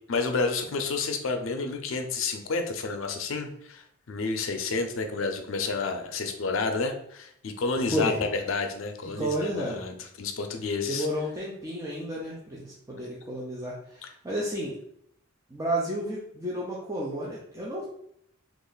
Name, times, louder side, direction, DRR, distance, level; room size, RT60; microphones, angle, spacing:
voice 1, 0.1-11.1, left 4 dB, 75° left, 6 dB, 0.5 m, -30 dB
voice 2, 7.9-8.2 9.2-9.8 10.9-14.7 15.5-17.8, equal, 15° right, -6 dB, 0.5 m, -31 dB
3.0 x 2.5 x 3.9 m, 0.70 s
head